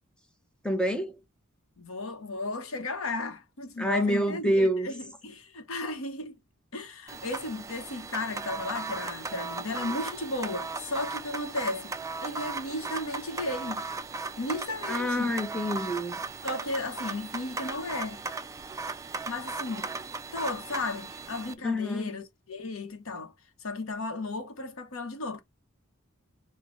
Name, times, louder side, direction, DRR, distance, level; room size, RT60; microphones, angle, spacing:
voice 1, 0.6-1.1 3.8-4.9 14.9-16.2 21.6-22.1, equal, 5° left, 0.8 m, -27 dB
voice 2, 1.8-6.4 6.7-11.9 12.2-13.9 14.4-15.4 16.4-18.2 19.3-19.9 20.3-23.3 23.6-25.4, left 2 dB, 80° left, 0.9 m, -34 dB
sound 1, 7.1-21.5, right 3 dB, 15° right, 0.3 m, -37 dB
5.1 x 2.2 x 3.7 m
head